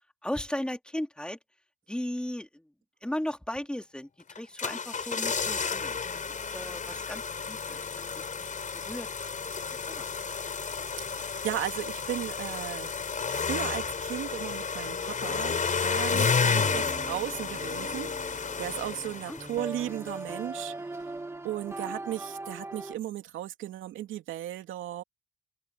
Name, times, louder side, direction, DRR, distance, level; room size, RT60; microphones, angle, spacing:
voice 1, 0.2-1.4 1.9-2.7 3.0-4.1 4.4-8.5 8.7-9.1 9.7-10.1 16.6-16.8 19.3-19.4 21.7-21.9, left 1 dB, 5° left, 3.1 m, -37 dB
sound 1, 4.3-19.8 20.1-20.2, left 5 dB, 40° left, 6.1 m, -31 dB
voice 2, 11.0-25.0, right 13 dB, 85° right, 2.7 m, -36 dB
sound 2, 16.6-22.9, right 2 dB, 10° right, 1.4 m, -40 dB
open air
cardioid pair, 90°, 20 cm